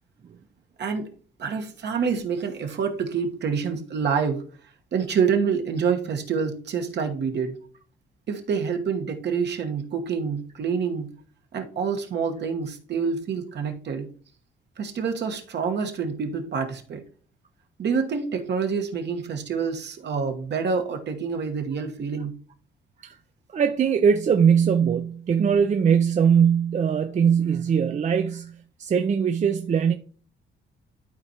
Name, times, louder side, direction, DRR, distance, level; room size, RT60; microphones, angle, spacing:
voice 1, 1.4-4.4 4.9-7.6 8.3-11.1 11.5-14.1 14.8-17.0 17.8-22.3, right 6 dB, 60° right, 1.2 m, -27 dB
voice 2, 23.5-28.5 28.8-29.9, right 7 dB, 35° right, 0.5 m, -21 dB
12.5 x 4.3 x 2.9 m
cardioid pair, 90°, 20 cm